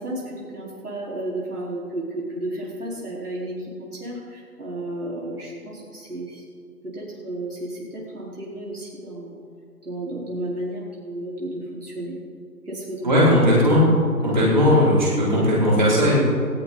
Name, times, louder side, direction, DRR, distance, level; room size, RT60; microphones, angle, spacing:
voice 1, 0.0-6.4 6.8-9.4 9.8-12.2 12.7-13.1 13.7-14.3, right 1 dB, 65° right, -5 dB, 4.2 m, -33 dB
voice 2, 13.0-13.9 14.2-16.2, left 1 dB, 30° right, -9 dB, 5.2 m, -17 dB
18.5 x 17.0 x 3.9 m, 2.3 s
figure-of-eight pair, 175°, 48 cm